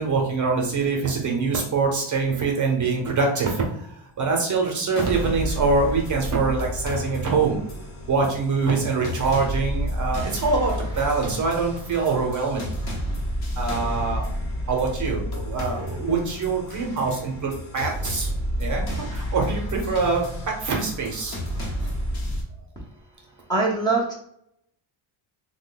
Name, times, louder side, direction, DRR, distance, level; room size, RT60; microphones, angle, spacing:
voice 1, 0.0-7.6 8.1-12.6 13.6-14.2 14.7-18.3 18.6-20.2 20.6-21.4 21.8-21.9, right 4 dB, 35° right, 0 dB, 0.7 m, -24 dB
sound 1, 5.0-22.4, equal, 50° left, 0.9 m, -30 dB
voice 2, 23.5-24.1, right 3 dB, 10° left, -6 dB, 0.6 m, -22 dB
3.1 x 2.2 x 3.8 m, 0.71 s
cardioid pair, 170°, 50 cm